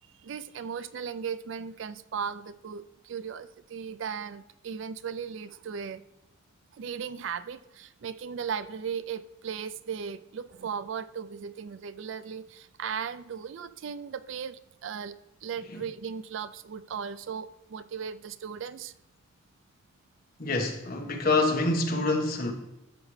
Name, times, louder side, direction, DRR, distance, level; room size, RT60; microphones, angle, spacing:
voice 1, 0.2-6.0 6.7-18.9, right 7 dB, 65° right, 14 dB, 0.4 m, -37 dB
voice 2, 20.4-22.5, left 2 dB, 45° left, 2 dB, 1.3 m, -26 dB
12.0 x 7.3 x 3.2 m, 0.95 s
head